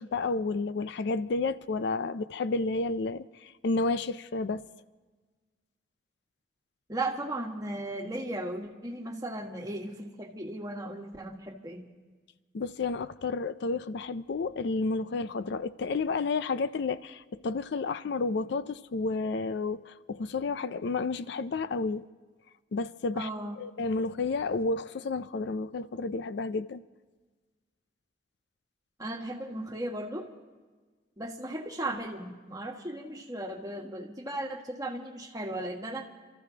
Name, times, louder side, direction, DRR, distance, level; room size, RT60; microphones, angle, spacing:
voice 1, 0.0-4.6 12.5-22.0 22.7-23.3 23.6-26.8, left 3 dB, 65° left, 0.4 m, -31 dB
voice 2, 6.9-11.8 23.1-23.6 29.0-30.3 31.2-36.0, right 1 dB, 20° right, 1.5 m, -36 dB
30.0 x 13.5 x 2.8 m
head